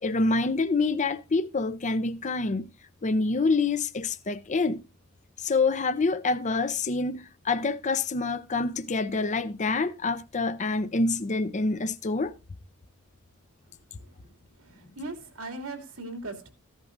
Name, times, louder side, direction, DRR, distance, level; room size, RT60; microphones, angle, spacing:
voice 1, 0.0-2.7 3.0-4.8 5.4-12.4, left 3 dB, 35° left, 0.6 m, -26 dB
voice 2, 14.6-16.5, right 2 dB, 85° right, 2.6 m, -39 dB
15.0 x 11.0 x 2.6 m
head